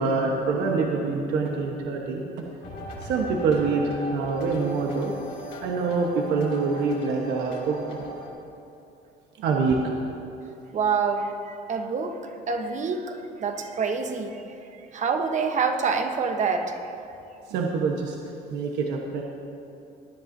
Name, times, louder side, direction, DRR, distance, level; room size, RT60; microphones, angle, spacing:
voice 1, 0.0-2.4 3.0-5.1 5.6-8.0 9.4-9.9 17.5-18.2 18.5-19.2, right 4 dB, 80° right, 0 dB, 1.1 m, -25 dB
sound 1, 2.6-8.3, equal, 75° left, 2.7 m, -39 dB
voice 2, 10.7-12.2 12.5-14.5 14.9-16.9, right 5 dB, 45° right, 6 dB, 1.0 m, -27 dB
19.5 x 10.5 x 2.7 m, 2.8 s
cardioid pair, 110°, 17 cm